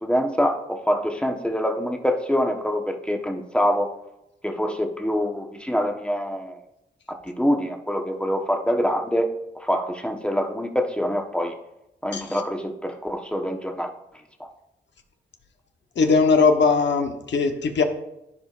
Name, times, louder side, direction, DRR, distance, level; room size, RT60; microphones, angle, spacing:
voice 1, 0.0-3.9 4.4-6.6 7.2-9.3 9.5-11.5 12.0-13.9 14.4-14.5, equal, 5° left, 3 dB, 1.2 m, -25 dB
voice 2, 16.0-17.8, left 4 dB, 70° left, 5 dB, 1.1 m, -20 dB
14.5 x 4.8 x 2.5 m, 0.88 s
cardioid pair, 60°, 19 cm